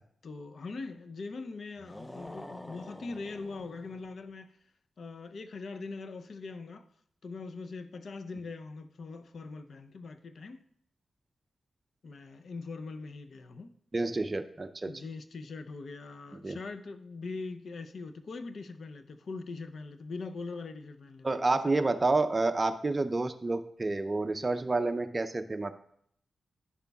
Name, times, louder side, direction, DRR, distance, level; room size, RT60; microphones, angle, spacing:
voice 1, 0.2-4.6 5.0-6.8 7.2-10.6 12.0-13.7 14.8-21.8, left 3 dB, 70° left, 10 dB, 0.6 m, -42 dB
sound 1, 1.8-4.1, left 1 dB, 15° left, 0.5 m, -47 dB
voice 2, 13.9-14.9 16.4-16.6 21.2-25.7, right 3 dB, 35° right, 8 dB, 0.5 m, -29 dB
10.5 x 6.7 x 2.3 m, 0.66 s
cardioid pair, 50°, 0 cm